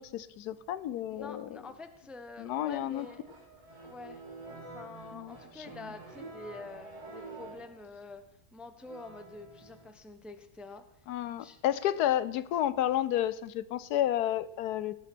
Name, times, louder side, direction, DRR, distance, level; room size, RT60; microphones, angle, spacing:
voice 1, 0.0-1.6 2.4-3.1 5.1-5.3 11.1-14.9, left 12 dB, 90° left, 16 dB, 1.2 m, -31 dB
voice 2, 1.1-3.4 3.8-4.2 4.7-10.9 11.4-11.6, left 3 dB, ahead, 9 dB, 0.6 m, -47 dB
sound 1, 2.8-7.8 8.8-9.9, right 2 dB, 90° right, 3.5 m, -48 dB
18.5 x 7.0 x 6.1 m, 0.77 s
omnidirectional pair, 1.6 m